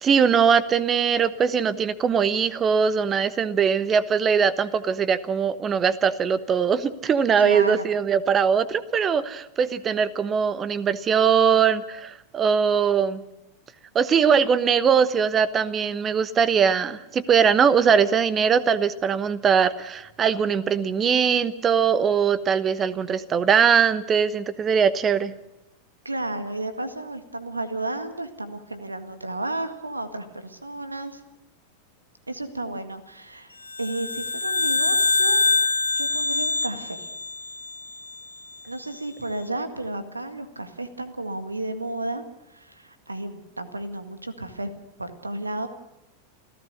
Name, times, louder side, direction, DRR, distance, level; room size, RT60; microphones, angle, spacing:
voice 1, 0.0-13.2 13.9-25.3, right 7 dB, 25° right, 16 dB, 1.1 m, -21 dB
voice 2, 7.4-7.9 26.0-31.2 32.3-35.4 35.9-37.1 38.7-42.2 42.5-44.7 45.0-45.7, right 2 dB, 80° right, 9 dB, 1.8 m, -32 dB
sound 1, 33.7-38.2, left 3 dB, 80° left, 0.7 m, -24 dB
28.5 x 15.5 x 6.6 m, 0.91 s
figure-of-eight pair, 90°, 0 cm